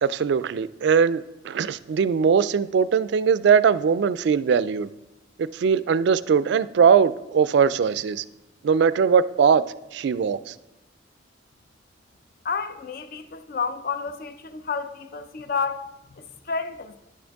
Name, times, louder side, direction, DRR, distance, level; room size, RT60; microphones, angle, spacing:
voice 1, 0.0-4.9 5.4-8.2 8.6-9.6 9.9-10.5, right 6 dB, 65° right, 0.3 m, -20 dB
voice 2, 12.4-17.0, left 5 dB, 50° left, 0.5 m, -30 dB
10.5 x 6.3 x 3.5 m
head